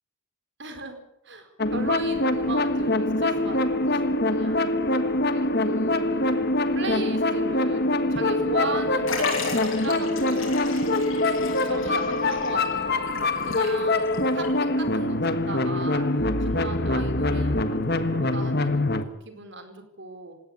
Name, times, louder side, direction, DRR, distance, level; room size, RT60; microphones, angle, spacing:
voice 1, 0.6-1.0 1.2-4.7 5.3-6.3 6.7-7.8 8.1-11.2 11.6-13.0 13.4-14.5 14.8-16.1 16.4-20.3, right 2 dB, 55° right, 7 dB, 4.3 m, -37 dB
sound 1, 1.6-19.0, left 2 dB, 45° left, 1.5 m, -24 dB
Liquid, 9.1-14.2 14.4-14.5 15.5-15.6, left 4 dB, 65° left, 7.7 m, -36 dB
20.0 x 17.5 x 8.6 m, 0.81 s
head